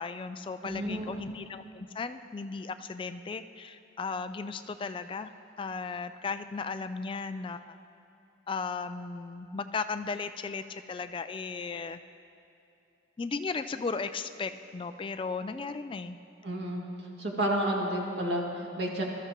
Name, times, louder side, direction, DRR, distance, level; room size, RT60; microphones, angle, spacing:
voice 1, 0.0-5.3 5.6-7.6 8.5-12.0 13.2-16.2, left 4 dB, 30° left, 10 dB, 0.3 m, -36 dB
voice 2, 0.6-1.2 16.4-16.8 17.2-19.0, right 1 dB, 65° right, -2 dB, 2.2 m, -31 dB
21.5 x 13.0 x 3.0 m, 2.7 s
head